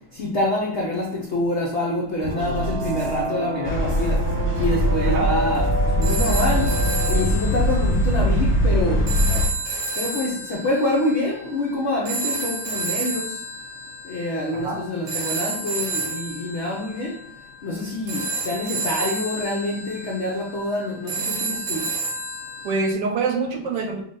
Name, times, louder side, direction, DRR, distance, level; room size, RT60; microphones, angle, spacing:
voice 1, 0.1-4.2 4.6-5.7 6.0-6.7 7.1-9.0 10.0-13.3 14.1-17.1 17.6-21.9, left 1 dB, 75° left, -2 dB, 0.6 m, -26 dB
sound 1, 2.2-7.2, right 1 dB, 30° right, 1.3 m, -28 dB
sound 2, 3.6-9.5, equal, 10° left, 0.6 m, -21 dB
sound 3, 6.0-22.9, right 3 dB, 85° right, 2.0 m, -31 dB
voice 2, 22.6-24.0, right 4 dB, 70° right, 2 dB, 1.2 m, -25 dB
6.1 x 2.3 x 3.8 m, 0.67 s
omnidirectional pair, 2.2 m